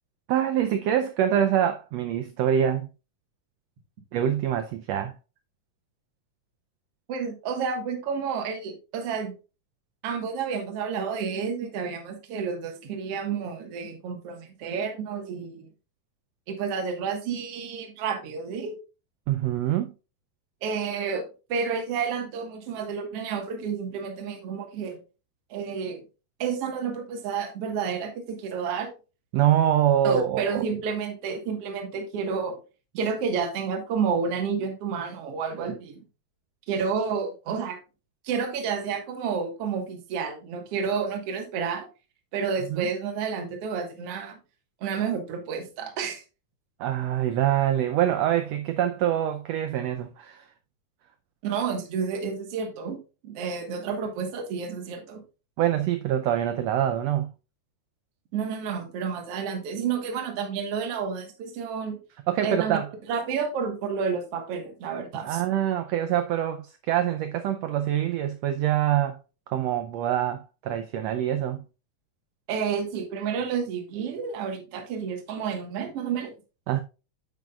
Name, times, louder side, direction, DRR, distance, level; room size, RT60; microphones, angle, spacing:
voice 1, 0.3-2.9 4.1-5.1 19.3-19.9 29.3-30.7 42.7-42.9 46.8-50.4 55.6-57.3 62.3-62.9 65.2-69.2 69.5-71.6 76.7-76.8, right 10 dB, 85° right, 1.4 m, -25 dB
voice 2, 7.1-9.3 10.0-15.7 16.5-18.8 20.6-25.0 25.5-26.0 26.4-28.9 30.0-32.6 33.0-36.0 36.7-37.8 38.2-41.9 42.3-44.4 44.8-46.2 51.4-55.2 58.3-62.0 62.4-62.8 63.1-65.4 72.5-76.3, right 6 dB, 55° right, 2.2 m, -30 dB
9.2 x 7.4 x 2.3 m
omnidirectional pair, 3.6 m